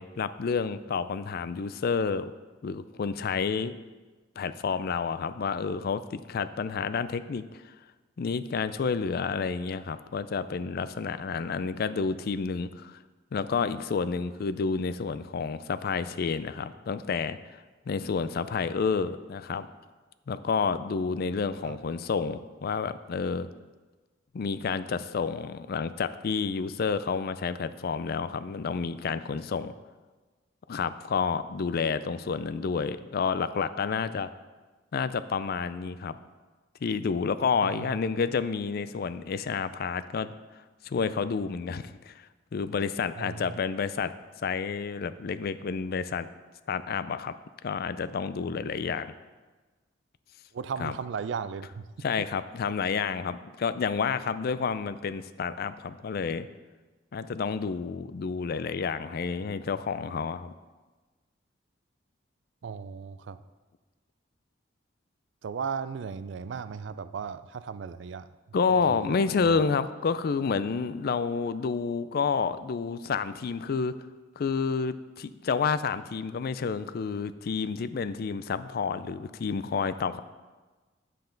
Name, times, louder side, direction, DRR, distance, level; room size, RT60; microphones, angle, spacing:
voice 1, 0.0-2.3 2.6-3.8 4.4-7.6 8.2-13.0 13.3-17.6 17.9-19.7 20.3-23.5 24.3-29.7 30.7-34.3 34.9-36.2 36.8-40.3 40.8-42.1 42.5-44.1 44.4-46.3 46.7-47.3 47.6-49.1 50.8-50.9 52.0-56.5 57.1-60.5 68.5-73.9 74.4-80.2, left 5 dB, 55° left, 13 dB, 0.4 m, -29 dB
voice 2, 37.6-38.0 43.2-43.6 50.5-52.3 62.6-63.4 65.4-68.3 68.7-69.6, right 6 dB, 70° right, 14 dB, 0.4 m, -36 dB
9.1 x 7.6 x 3.9 m, 1.3 s
head